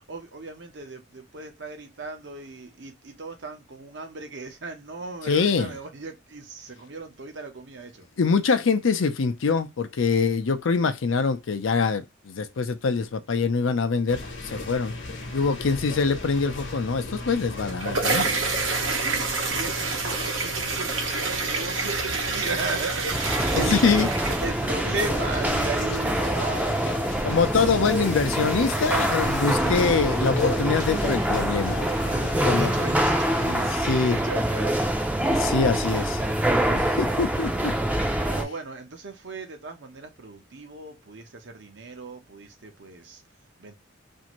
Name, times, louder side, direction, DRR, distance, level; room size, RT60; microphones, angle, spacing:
voice 1, 0.1-8.1 18.7-27.3 32.1-35.3 38.3-43.2 43.6-43.7, right 3 dB, 65° right, 0.8 m, -37 dB
voice 2, 5.3-5.8 8.2-14.9 15.3-18.4 23.6-24.1 27.2-31.8 32.4-32.7 33.4-34.2 35.2-36.2 36.7-37.7, left 5 dB, 85° left, 0.5 m, -24 dB
sound 1, 14.1-33.7, left 2 dB, 65° left, 0.9 m, -35 dB
sound 2, 17.5-25.0, right 4 dB, 90° right, 0.9 m, -28 dB
sound 3, 23.1-38.4, right 1 dB, 5° right, 0.4 m, -25 dB
2.6 x 2.6 x 2.9 m
head